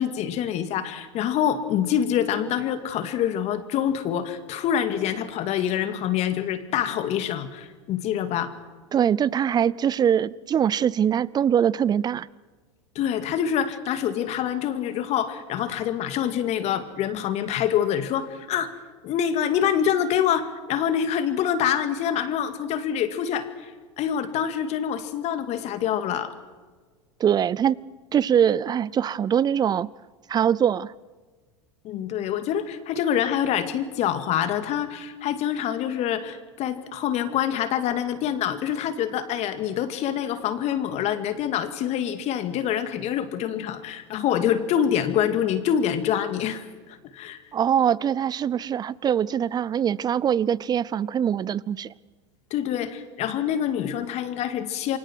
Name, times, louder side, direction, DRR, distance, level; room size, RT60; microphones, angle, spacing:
voice 1, 0.0-8.5 12.9-18.7 19.0-26.3 31.8-47.4 52.5-55.0, left 9 dB, 45° left, 2.3 m, -26 dB
voice 2, 8.9-12.3 27.2-27.8 28.1-29.9 30.3-30.9 47.5-51.9, right 9 dB, 25° right, 0.6 m, -23 dB
28.5 x 24.0 x 4.7 m
hypercardioid pair, 90°, 16 cm